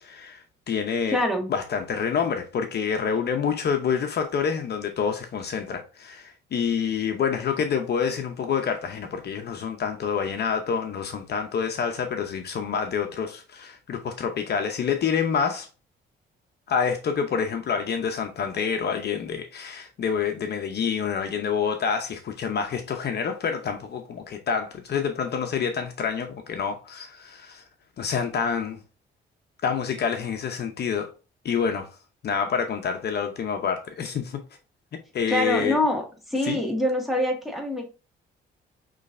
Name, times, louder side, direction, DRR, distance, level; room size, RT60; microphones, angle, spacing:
voice 1, 0.0-1.2 1.5-15.7 16.7-27.6 28.0-28.8 29.6-31.1 31.4-31.9 32.2-34.4 35.1-35.8 36.4-36.6, left 6 dB, 55° left, 0.8 m, -27 dB
voice 2, 1.1-1.5 35.3-36.0 36.3-37.8, left 1 dB, ahead, 1.8 m, -24 dB
6.3 x 3.2 x 2.6 m
cardioid pair, 90°, 20 cm